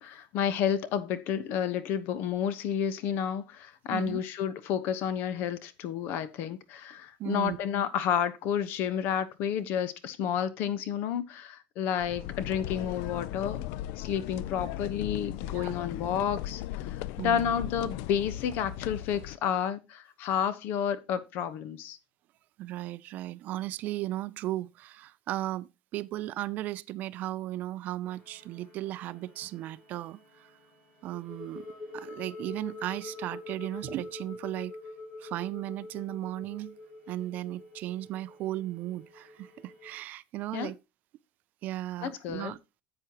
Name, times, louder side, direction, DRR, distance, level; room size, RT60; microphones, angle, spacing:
voice 1, 0.0-13.6 14.0-22.0 40.5-40.7 42.0-42.5, left 8 dB, 60° left, 1.1 m, -31 dB
voice 2, 7.2-7.6 15.5-15.8 17.2-17.5 22.6-30.5 31.0-31.7 31.9-34.7 35.2-36.8 37.1-40.8 41.6-42.6, right 15 dB, 50° right, 0.4 m, -36 dB
sound 1, 12.0-19.4, left 13 dB, 80° left, 0.4 m, -37 dB
sound 2, 28.1-40.0, left 2 dB, 35° left, 6.2 m, -46 dB
10.5 x 7.8 x 2.9 m
cardioid pair, 155°, 4 cm